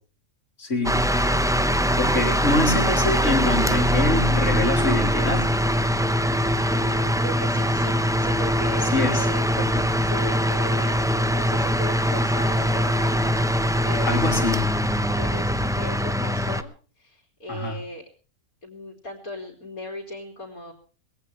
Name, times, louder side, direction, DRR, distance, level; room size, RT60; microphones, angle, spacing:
voice 1, 0.6-1.0 2.0-5.5 8.9-9.3 9.6-9.8 14.0-14.6 17.5-17.8, left 2 dB, 50° left, 5 dB, 3.6 m, -25 dB
sound 1, 0.8-16.6, equal, 5° right, 0.6 m, -22 dB
voice 2, 6.7-9.5 10.0-14.4 15.1-18.0 18.6-20.7, left 1 dB, 70° left, -1 dB, 3.7 m, -38 dB
21.0 x 17.0 x 3.3 m, 0.38 s
omnidirectional pair, 1.6 m